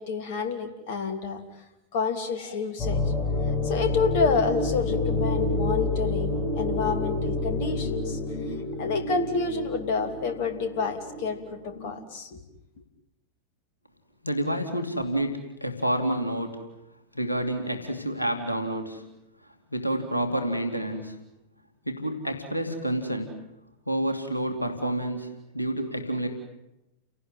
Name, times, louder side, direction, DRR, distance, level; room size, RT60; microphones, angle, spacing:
voice 1, 0.0-1.4 1.9-3.0 3.6-8.2 8.8-12.4, left 4 dB, 50° left, 7 dB, 3.0 m, -29 dB
sound 1, 2.8-11.9, left 2 dB, 20° left, 6.4 m, -29 dB
voice 2, 14.2-16.7 17.1-19.1 19.4-21.2 21.8-23.4 23.9-26.3, right 1 dB, 85° left, 6 dB, 2.7 m, -29 dB
30.0 x 18.5 x 9.5 m, 0.92 s
figure-of-eight pair, 90°, 0 cm